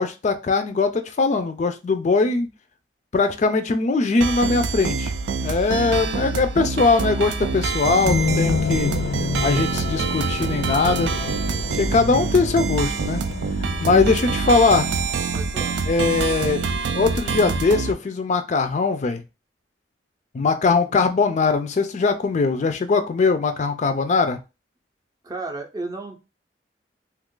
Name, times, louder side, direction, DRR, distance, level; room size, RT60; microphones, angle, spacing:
voice 1, 0.0-2.5 3.1-5.1 5.4-8.9 9.4-11.1 11.7-13.2 13.8-14.9 15.9-16.7 16.9-19.2 20.3-24.4, left 4 dB, 40° left, 8 dB, 0.4 m, -21 dB
sound 1, 4.2-17.9, right 4 dB, 80° right, 0.4 m, -26 dB
voice 2, 5.8-6.3 14.0-14.6 15.3-15.8 20.9-21.1 25.2-26.2, right 2 dB, 20° right, 3 dB, 0.5 m, -36 dB
sound 2, 8.1-15.3, left 4 dB, 90° left, 0.5 m, -28 dB
2.8 x 2.4 x 3.7 m, 0.27 s
head